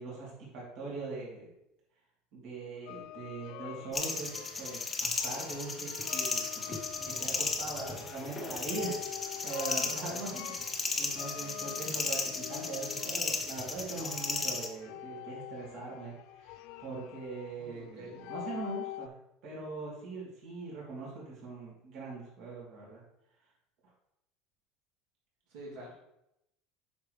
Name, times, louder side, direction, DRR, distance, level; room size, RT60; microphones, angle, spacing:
voice 1, 0.0-1.5 2.3-6.6 7.0-19.1 19.4-23.0, right 3 dB, 50° right, -5 dB, 2.9 m, -41 dB
sound 1, 2.9-19.1, left 15 dB, 60° left, 0.3 m, -46 dB
sound 2, 3.9-14.7, left 4 dB, 15° left, 0.8 m, -35 dB
voice 2, 7.7-8.1 9.6-10.3 17.6-18.2 25.5-25.9, equal, 65° right, -6 dB, 2.7 m, -45 dB
8.3 x 6.1 x 3.3 m, 0.83 s
cardioid pair, 160°, 0 cm